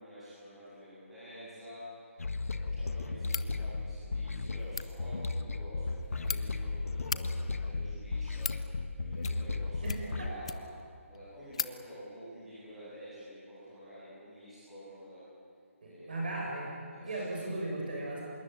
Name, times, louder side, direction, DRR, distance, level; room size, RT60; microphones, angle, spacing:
voice 1, 0.0-10.6 11.1-15.2 15.8-16.2 16.9-17.6, equal, 5° right, -13 dB, 7.6 m, -49 dB
sound 1, 2.2-10.3, left 3 dB, 75° left, 1.7 m, -35 dB
sound 2, 3.2-3.5 4.6-4.9 5.8-6.4 7.0-7.2 8.0-8.6 9.2-9.6 9.8-10.8 11.1-11.2 11.5-11.7, left 6 dB, 25° left, 0.6 m, -37 dB
voice 2, 9.8-10.3 15.8-16.8 17.0-18.2, right 2 dB, 40° right, -2 dB, 7.1 m, -37 dB
26.0 x 21.5 x 9.4 m, 2.2 s
hypercardioid pair, 180°, 8 cm